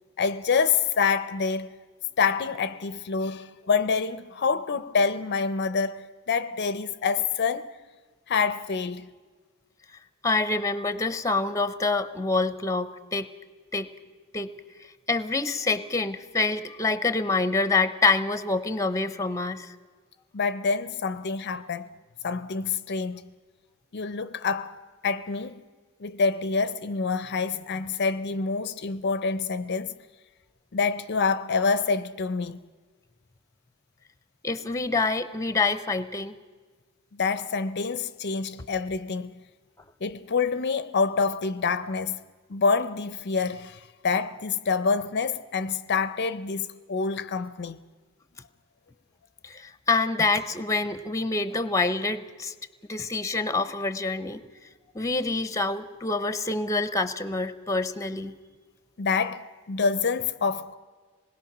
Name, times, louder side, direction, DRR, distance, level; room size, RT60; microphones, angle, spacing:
voice 1, 0.2-1.7 2.2-7.7 8.3-9.1 20.3-21.9 22.2-23.2 23.9-25.6 26.0-29.9 30.7-32.6 37.1-39.4 40.0-42.2 42.5-47.8 59.0-60.7, left 5 dB, 50° left, 0.5 m, -27 dB
voice 2, 10.2-13.3 13.7-13.9 14.3-14.5 15.1-19.7 34.4-36.3 49.4-52.5 52.9-54.4 54.9-58.3, left 3 dB, 15° left, 0.7 m, -26 dB
26.5 x 20.5 x 6.0 m
head